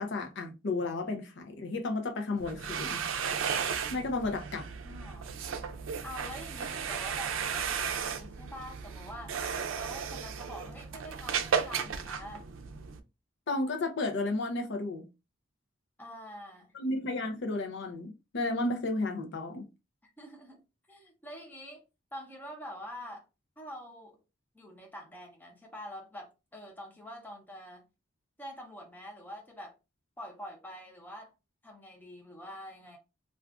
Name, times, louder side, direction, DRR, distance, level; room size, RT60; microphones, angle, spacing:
voice 1, 0.0-3.0 3.9-4.7 13.5-15.1 16.7-19.7, left 2 dB, 65° left, 0.6 m, -33 dB
sound 1, 2.4-13.0, right 6 dB, 80° right, 0.4 m, -35 dB
voice 2, 4.8-5.3 6.0-9.4 9.7-12.5 16.0-16.8 20.0-20.6 20.9-21.8 22.1-23.3 23.6-24.2 24.5-27.8 28.4-29.7 30.2-31.3 31.6-33.0, equal, 10° left, 0.8 m, -45 dB
2.5 x 2.4 x 3.4 m
head